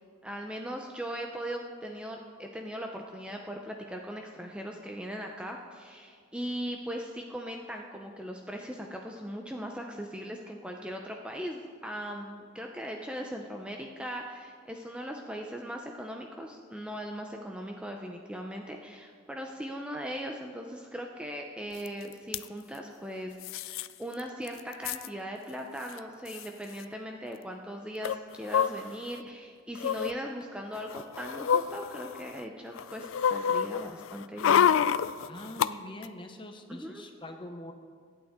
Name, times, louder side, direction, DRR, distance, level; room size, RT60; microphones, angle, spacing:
voice 1, 0.2-34.7 36.7-37.0, equal, 5° right, 2 dB, 0.6 m, -39 dB
sound 1, 21.9-22.0 22.1-22.4 23.4-23.9 24.2-24.3 24.5-25.1 25.9-26.0 26.3-26.5 28.0-29.2 29.8-30.1 30.8-32.4 32.8-35.7 36.0-36.1, left 8 dB, 80° left, 0.3 m, -28 dB
voice 2, 35.3-37.7, left 1 dB, 25° left, 5 dB, 0.9 m, -44 dB
24.0 x 8.8 x 3.7 m, 2.1 s
head